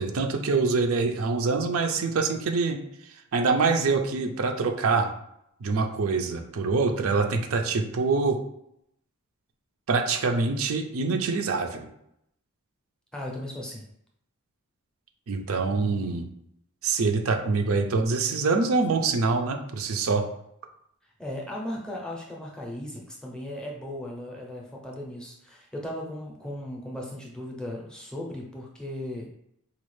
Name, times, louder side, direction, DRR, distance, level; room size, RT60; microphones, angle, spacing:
voice 1, 0.0-2.8 3.3-5.1 5.6-8.4 9.9-11.9 15.3-16.2 16.8-20.2, right 4 dB, 65° right, 4 dB, 0.5 m, -25 dB
voice 2, 13.1-13.8 21.2-29.3, left 1 dB, 5° left, -1 dB, 0.6 m, -37 dB
4.1 x 2.4 x 3.1 m, 0.75 s
head